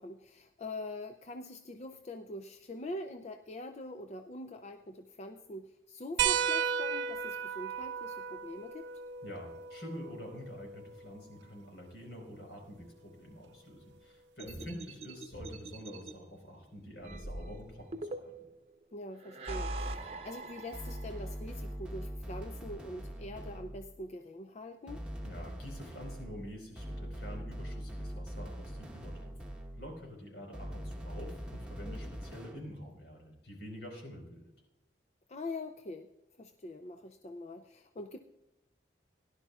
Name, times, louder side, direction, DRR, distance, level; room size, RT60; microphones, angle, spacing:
voice 1, 0.0-8.9 14.4-14.7 18.9-25.0 31.9-32.1 35.3-36.1 36.4-38.2, left 1 dB, 40° left, 6 dB, 0.5 m, -44 dB
sound 1, 6.2-11.3 12.8-12.9 14.6-14.7, right 8 dB, 85° right, 0.7 m, -35 dB
voice 2, 9.2-18.5 25.2-29.3 29.7-34.4, equal, 75° left, 1 dB, 4.4 m, -47 dB
sound 2, 14.4-16.1 17.0-18.6 19.2-21.4, right 2 dB, 35° right, 0.8 m, -42 dB
sound 3, 20.7-24.0 24.9-30.0 30.5-32.7, equal, 5° right, 1.1 m, -42 dB
17.5 x 11.0 x 2.4 m, 0.91 s
head